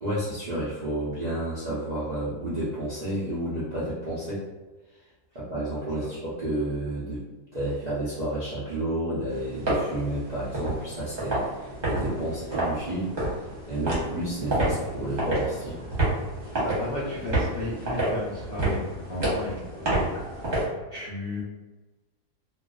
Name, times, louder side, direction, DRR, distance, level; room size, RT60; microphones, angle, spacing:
voice 1, 0.0-4.4 5.3-7.2 7.5-13.1 13.7-15.8, right 1 dB, 80° right, -10 dB, 0.3 m, -31 dB
sound 1, 9.3-20.7, right 1 dB, 40° right, 0.8 m, -29 dB
voice 2, 16.5-20.1 20.9-21.4, left 2 dB, 85° left, -7 dB, 0.5 m, -34 dB
2.4 x 2.3 x 2.3 m, 1.2 s
omnidirectional pair, 1.7 m